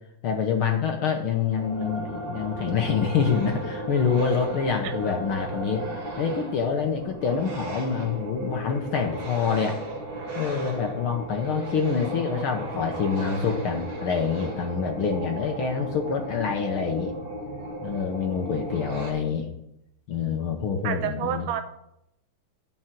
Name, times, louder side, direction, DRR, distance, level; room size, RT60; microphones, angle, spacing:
voice 1, 0.2-5.9 6.2-9.8 10.3-17.1 17.8-19.5 20.1-21.5, left 6 dB, 65° left, 3 dB, 1.3 m, -26 dB
sound 1, 1.5-19.1, right 1 dB, 35° right, 2.8 m, -35 dB
voice 2, 20.8-21.6, right 10 dB, 70° right, 7 dB, 1.9 m, -29 dB
10.5 x 4.6 x 7.7 m, 0.80 s
omnidirectional pair, 3.6 m